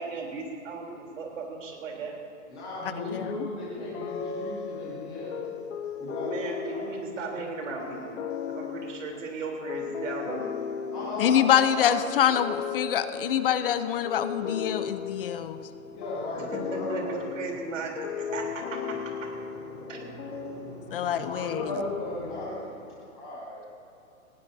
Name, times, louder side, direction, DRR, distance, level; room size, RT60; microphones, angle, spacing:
voice 1, 0.0-2.1 6.2-8.2 8.5-10.5 16.5-18.8 19.2-19.3 19.9-20.0, right 4 dB, 65° right, 0 dB, 3.7 m, -36 dB
voice 2, 2.5-5.5 6.0-7.5 10.9-12.0 14.3-14.4 14.8-17.6 18.2-18.5 19.2-23.6, left 2 dB, 5° left, -7 dB, 0.4 m, -37 dB
voice 3, 3.1-3.5 11.2-15.6 20.9-21.7, left 10 dB, 40° left, 11 dB, 0.7 m, -25 dB
sound 1, 3.9-21.1, left 7 dB, 65° left, 1.2 m, -36 dB
20.0 x 16.5 x 2.8 m, 2.8 s
hypercardioid pair, 150°, 42 cm